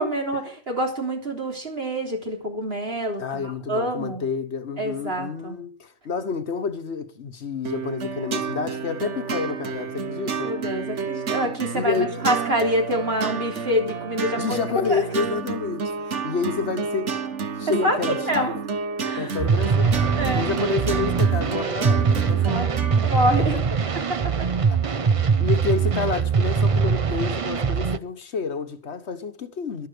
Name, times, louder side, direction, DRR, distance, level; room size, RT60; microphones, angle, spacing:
voice 1, 0.0-4.2 4.8-5.6 10.4-15.0 17.7-18.0 18.2-18.6 19.0-19.3 20.2-20.5 22.4-23.6 24.1-24.5, equal, 50° right, 3.6 m, -26 dB
voice 2, 3.2-10.6 11.7-12.3 14.3-17.1 17.6-18.5 19.2-20.0 20.3-22.6 23.4-23.5 24.7-25.0 25.4-29.9, left 5 dB, 65° left, 1.4 m, -29 dB
sound 1, 7.6-23.1, right 6 dB, 75° right, 1.5 m, -30 dB
sound 2, 19.4-28.0, right 5 dB, 35° right, 0.6 m, -22 dB
12.0 x 12.0 x 6.1 m
omnidirectional pair, 1.2 m